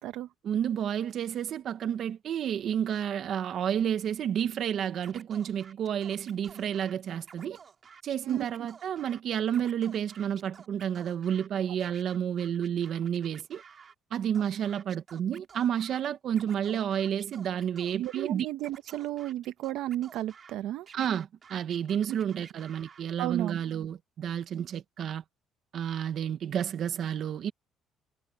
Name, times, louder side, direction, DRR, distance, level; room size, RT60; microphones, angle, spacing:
voice 1, 0.4-7.6 8.0-13.6 14.1-18.5 20.9-25.2 25.7-27.5, right 9 dB, 50° right, 1.6 m, -30 dB
Scratching (performance technique), 5.0-6.9 7.2-9.2 9.5-11.5 11.8-13.9 14.3-16.0 16.3-18.3 18.6-20.5 20.9-23.0, right 6 dB, 35° right, 3.7 m, -53 dB
voice 2, 17.9-20.9 23.2-23.6, right 14 dB, 75° right, 1.2 m, -33 dB
cardioid pair, 145°, 0 cm